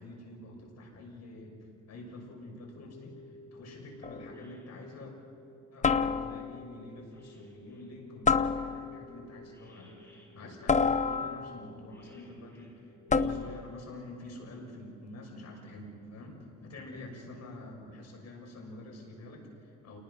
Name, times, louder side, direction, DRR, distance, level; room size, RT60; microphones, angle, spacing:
voice 1, 0.0-1.5 1.9-5.1 5.7-20.0, left 1 dB, 60° left, 1 dB, 6.7 m, -47 dB
sound 1, 2.5-8.1 8.6-13.3, left 2 dB, 10° left, 5.7 m, -55 dB
sound 2, 4.0-4.4 5.8-6.6 8.3-9.1 10.7-11.6 13.1-13.7, left 5 dB, 25° left, 0.8 m, -28 dB
30.0 x 19.5 x 5.8 m, 2.7 s
cardioid pair, 90°, 30 cm